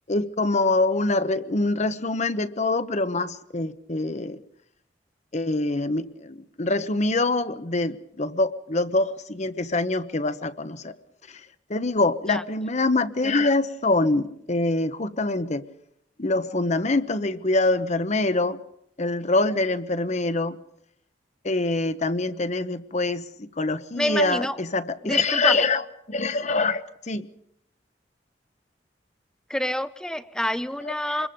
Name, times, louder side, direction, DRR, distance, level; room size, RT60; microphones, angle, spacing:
voice 1, 0.1-4.4 5.3-10.9 11.3-11.4 11.7-15.6 16.2-18.6 19.0-20.6 21.4-27.2 30.8-30.9 31.2-31.3, left 2 dB, 40° left, 11 dB, 1.1 m, -25 dB
voice 2, 24.0-24.6 25.0-25.7 29.5-31.3, equal, 5° left, 13 dB, 0.7 m, -28 dB
26.0 x 21.5 x 5.3 m, 0.75 s
head